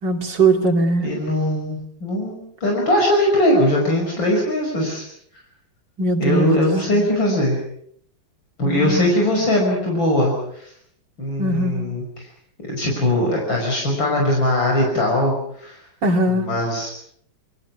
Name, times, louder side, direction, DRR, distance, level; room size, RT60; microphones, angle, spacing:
voice 1, 0.0-1.1 6.0-6.5 6.9-7.1 8.6-9.1 11.4-11.9 16.0-16.5, right 2 dB, 65° right, 4 dB, 3.4 m, -20 dB
voice 2, 1.0-5.0 6.2-7.6 8.6-10.7 11.2-12.3 12.7-15.8 16.3-16.9, left 1 dB, 75° left, 0 dB, 6.4 m, -20 dB
29.0 x 22.5 x 6.0 m, 0.65 s
omnidirectional pair, 2.1 m